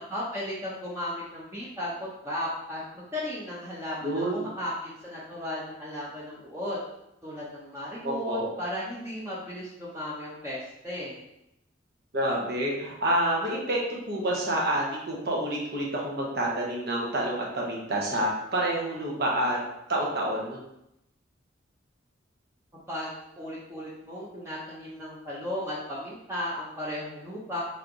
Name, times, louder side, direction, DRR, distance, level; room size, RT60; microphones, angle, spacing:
voice 1, 0.1-6.8 7.2-11.2 22.9-23.1 23.4-27.6, left 1 dB, 15° right, -7 dB, 0.7 m, -35 dB
voice 2, 4.0-4.5 8.0-8.5 12.1-13.8 14.1-19.6 19.9-20.6, right 1 dB, 60° right, -2 dB, 1.0 m, -28 dB
3.4 x 3.2 x 3.9 m, 0.85 s
head